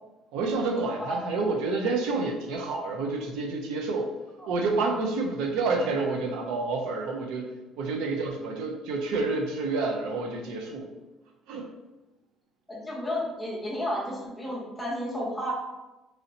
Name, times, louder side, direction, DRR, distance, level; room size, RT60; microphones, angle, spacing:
voice 1, 0.3-4.1 4.5-7.5 7.8-10.9 11.5-11.7, right 3 dB, 85° right, 3 dB, 0.5 m, -29 dB
voice 2, 12.7-15.5, equal, 5° left, -4 dB, 0.7 m, -32 dB
3.0 x 2.7 x 2.6 m, 1.1 s
cardioid pair, 165°, 0 cm